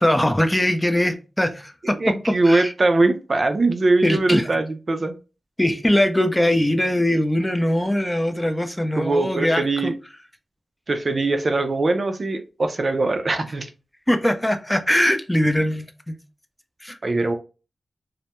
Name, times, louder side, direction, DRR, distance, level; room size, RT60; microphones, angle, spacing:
voice 1, 0.0-2.7 4.0-4.5 5.6-9.9 14.1-16.2 16.8-17.0, left 1 dB, 10° left, 0.4 m, -21 dB
voice 2, 2.0-5.1 9.0-9.9 10.9-13.7 17.0-17.3, right 2 dB, 55° right, 0.4 m, -21 dB
2.1 x 2.0 x 2.8 m
cardioid pair, 45°, 0 cm